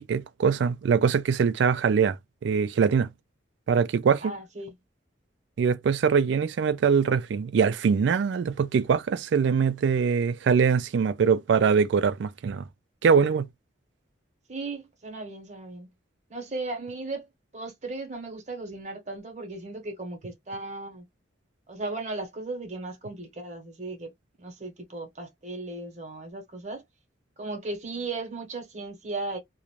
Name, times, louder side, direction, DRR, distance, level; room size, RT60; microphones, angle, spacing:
voice 1, 0.1-2.2 2.4-3.1 3.7-4.3 5.6-12.6 13.0-13.5, right 6 dB, 70° right, 0.3 m, -23 dB
voice 2, 4.2-4.7 14.5-15.9 16.3-17.3 17.5-21.1 21.7-24.1 24.4-26.8 27.4-29.4, right 2 dB, 35° right, 0.9 m, -36 dB
2.4 x 2.1 x 3.0 m
head